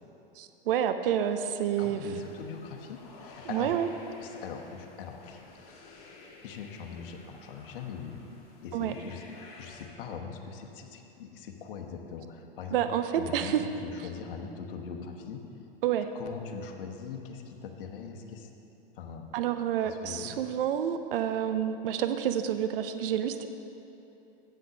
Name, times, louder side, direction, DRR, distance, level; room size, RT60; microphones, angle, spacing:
voice 1, 0.4-2.0 3.4-3.9 8.7-8.9 12.7-13.6 15.8-16.1 19.3-23.5, right 10 dB, 70° right, 9 dB, 0.6 m, -29 dB
voice 2, 1.8-3.8 4.2-5.8 6.4-8.2 8.6-9.2 9.6-12.8 13.2-15.4 16.1-18.5 19.0-19.3 19.8-20.3, left 6 dB, 65° left, 3 dB, 1.2 m, -41 dB
sound 1, 2.1-9.9, left 3 dB, 50° left, 2.0 m, -52 dB
7.9 x 7.9 x 6.3 m, 3.0 s
hypercardioid pair, 100°, 29 cm